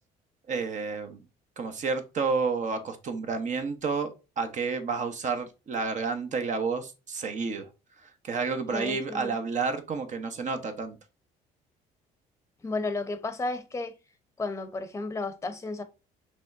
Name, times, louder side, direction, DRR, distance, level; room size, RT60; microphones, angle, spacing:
voice 1, 0.5-1.2 1.6-7.7 8.2-11.0, right 4 dB, 45° right, 1.0 m, -30 dB
voice 2, 8.7-9.3 12.6-13.9 14.4-15.8, left 3 dB, 15° left, 0.8 m, -33 dB
5.3 x 3.2 x 2.6 m
cardioid pair, 110°, 17 cm